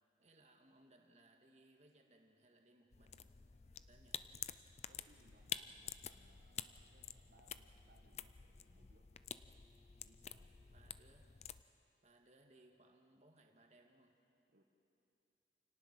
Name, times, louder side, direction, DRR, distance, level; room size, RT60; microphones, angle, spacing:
voice 1, 0.2-4.2 10.7-11.3 12.0-14.2, right 2 dB, 40° right, 3 dB, 1.8 m, -67 dB
sound 1, 2.9-11.6, left 9 dB, 35° left, 0.5 m, -50 dB
voice 2, 4.9-9.1 10.0-10.5 14.5-14.6, right 1 dB, 55° right, 0 dB, 1.4 m, -71 dB
Bowed string instrument, 6.1-10.9, left 1 dB, 80° left, 2.6 m, -77 dB
28.0 x 18.5 x 6.1 m, 2.6 s
head